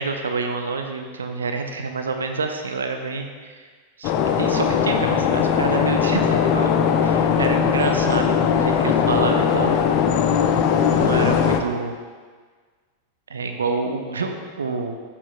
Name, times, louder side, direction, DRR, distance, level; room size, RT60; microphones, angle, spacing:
voice 1, 0.0-3.6 4.0-4.1 4.4-6.8 7.0-9.8 11.0-11.9 13.3-14.9, right 4 dB, 70° right, 5 dB, 0.5 m, -27 dB
sound 1, 4.0-11.6, left 7 dB, 45° left, 0.5 m, -19 dB
8.4 x 7.3 x 2.2 m, 1.5 s
figure-of-eight pair, 90°, 0 cm